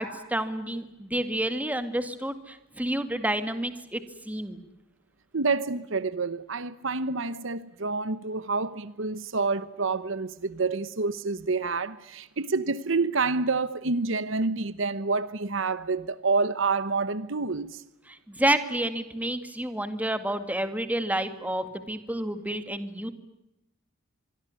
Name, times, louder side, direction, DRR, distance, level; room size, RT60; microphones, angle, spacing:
voice 1, 0.0-4.6 18.1-23.1, right 1 dB, 5° right, 2.2 m, -29 dB
voice 2, 5.3-17.8, right 4 dB, 60° right, 1.0 m, -28 dB
26.0 x 23.0 x 9.7 m
head